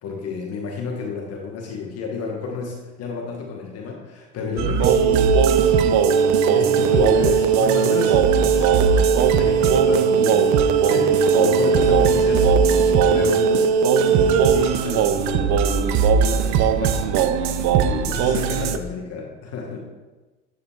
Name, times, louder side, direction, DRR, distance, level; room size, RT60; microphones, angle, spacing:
voice 1, 0.0-5.3 5.6-13.7 14.1-19.8, left 5 dB, 45° left, -1 dB, 1.1 m, -31 dB
sound 1, 4.6-18.8, right 6 dB, 50° right, 0.5 m, -18 dB
10.0 x 3.9 x 2.4 m, 1.2 s
hypercardioid pair, 70°, 35 cm